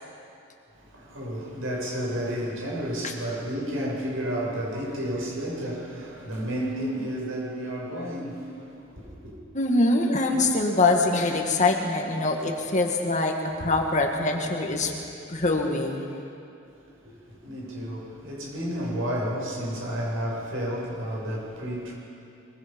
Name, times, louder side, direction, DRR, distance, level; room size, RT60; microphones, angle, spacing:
voice 1, 0.7-9.3 17.0-21.9, equal, 80° right, -3 dB, 6.7 m, -31 dB
voice 2, 9.5-14.9 15.3-16.2, left 2 dB, 35° left, 2 dB, 1.9 m, -24 dB
23.0 x 22.5 x 5.4 m, 2.7 s
head